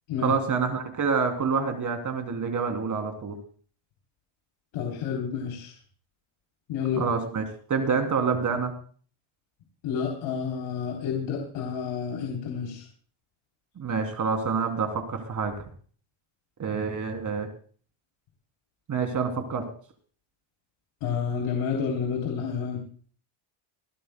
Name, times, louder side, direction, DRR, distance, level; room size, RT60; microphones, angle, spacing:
voice 1, 0.2-3.4 7.0-7.4 7.7-8.7 13.8-15.5 16.6-17.5 18.9-19.7, right 5 dB, 40° right, 6 dB, 3.0 m, -27 dB
voice 2, 4.7-5.7 6.7-7.1 9.8-12.8 21.0-22.8, left 6 dB, 70° left, 0 dB, 3.6 m, -30 dB
26.5 x 12.5 x 2.2 m, 0.43 s
cardioid pair, 130°, 49 cm